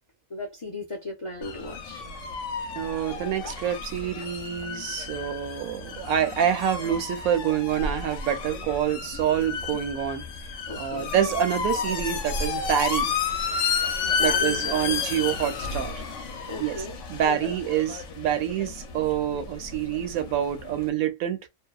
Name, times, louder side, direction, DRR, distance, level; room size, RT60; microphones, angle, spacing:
voice 1, 0.3-2.0 10.7-11.1 14.0-14.6 14.9-15.0 16.5-17.5, left 2 dB, 45° left, 0.4 m, -36 dB
sound 1, 1.4-20.9, left 5 dB, 65° left, 0.9 m, -32 dB
voice 2, 2.7-10.2 10.8-13.1 14.2-15.9 16.6-16.8 17.1-21.5, right 9 dB, 80° right, 1.0 m, -27 dB
2.7 x 2.1 x 2.2 m
omnidirectional pair, 1.5 m